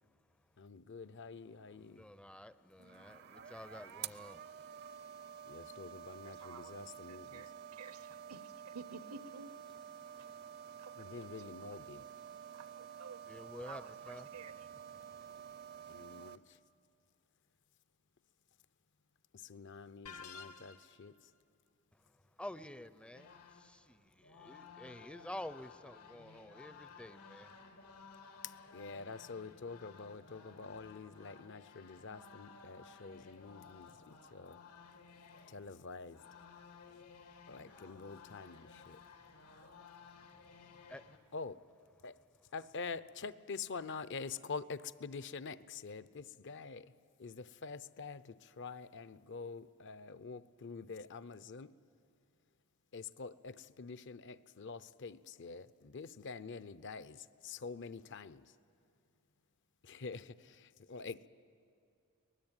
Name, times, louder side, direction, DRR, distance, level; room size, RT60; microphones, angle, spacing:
voice 1, 0.6-2.0 5.5-7.5 11.0-12.1 15.9-16.6 19.3-21.3 28.4-34.6 35.5-36.2 37.5-39.0 41.3-41.6 42.0-42.2 42.5-46.9 47.2-51.7 52.9-58.5 59.8-61.3, left 4 dB, 55° left, 0.6 m, -46 dB
voice 2, 1.7-4.7 7.3-7.4 13.3-16.1 21.9-27.7 28.3-28.4 40.9-41.1, left 1 dB, 5° left, 0.5 m, -51 dB
sound 1, 2.8-16.4, right 9 dB, 45° right, 0.6 m, -50 dB
voice 3, 6.2-6.8 7.1-9.5 10.2-10.3 10.8-11.1 12.5-13.2 13.6-14.5, right 4 dB, 80° right, 1.0 m, -52 dB
sound 2, 20.1-21.1, left 5 dB, 70° left, 1.2 m, -50 dB
sound 3, 23.1-41.2, left 5 dB, 90° left, 2.2 m, -57 dB
24.0 x 19.5 x 8.9 m
head